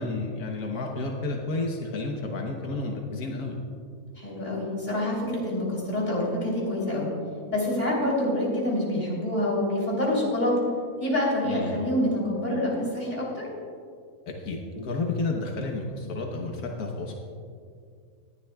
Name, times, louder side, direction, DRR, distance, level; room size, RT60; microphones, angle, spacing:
voice 1, 0.0-3.6 11.4-11.8 14.3-17.2, left 3 dB, 85° left, 1 dB, 1.5 m, -31 dB
voice 2, 4.2-7.1 7.5-10.5 11.0-13.4, left 1 dB, 30° left, -5 dB, 3.4 m, -26 dB
19.5 x 11.5 x 2.3 m, 2.3 s
omnidirectional pair, 1.5 m